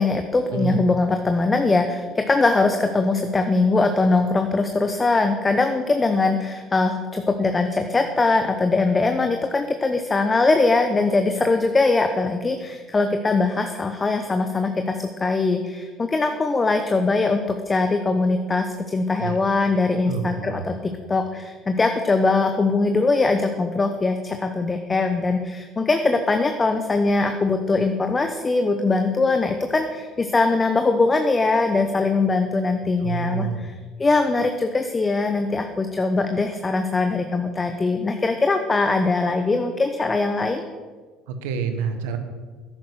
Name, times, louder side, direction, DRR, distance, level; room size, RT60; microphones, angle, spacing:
voice 1, 0.0-33.7 34.0-40.6, left 3 dB, 25° left, 6 dB, 1.0 m, -21 dB
voice 2, 0.5-0.8 19.2-19.4 20.1-20.7 33.0-33.6 41.3-42.2, right 6 dB, 90° right, 7 dB, 1.3 m, -28 dB
11.0 x 9.5 x 6.4 m, 1.5 s
supercardioid pair, 85°, 0 cm